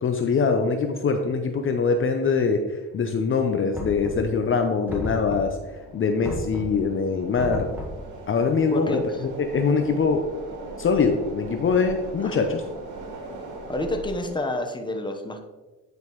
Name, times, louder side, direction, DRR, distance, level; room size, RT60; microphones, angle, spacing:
voice 1, 0.0-2.6 2.9-5.6 5.9-7.7 8.3-10.2 10.8-12.6, left 5 dB, 45° left, 5 dB, 0.7 m, -23 dB
sound 1, 2.8-14.4, right 2 dB, 80° right, 2.2 m, -41 dB
Knock, 3.7-4.5 4.9-5.7 6.2-6.8 7.3-8.1, equal, 5° right, 1.9 m, -34 dB
voice 2, 8.7-9.2 12.2-12.4 13.7-15.4, left 1 dB, 15° left, 4 dB, 1.0 m, -29 dB
9.6 x 5.2 x 3.1 m, 1.2 s
cardioid pair, 90°, 30 cm